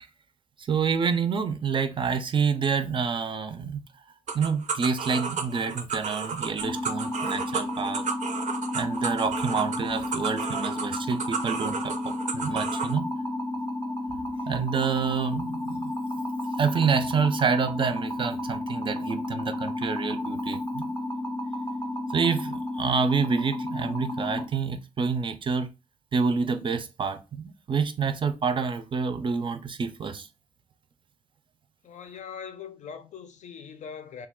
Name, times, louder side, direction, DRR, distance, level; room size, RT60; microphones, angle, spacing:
voice 1, 0.7-3.8 4.3-8.0 8.7-13.1 14.5-16.1 16.6-20.9 22.1-25.7 26.1-30.3, right 5 dB, 45° right, 0.4 m, -28 dB
sound 1, 4.3-12.9, right 5 dB, 90° right, 0.6 m, -33 dB
sound 2, 6.6-24.4, left 1 dB, 30° left, 0.5 m, -32 dB
voice 2, 31.8-34.3, left 7 dB, 80° left, 0.5 m, -41 dB
3.2 x 2.3 x 3.5 m
wide cardioid pair, 160°, 12 cm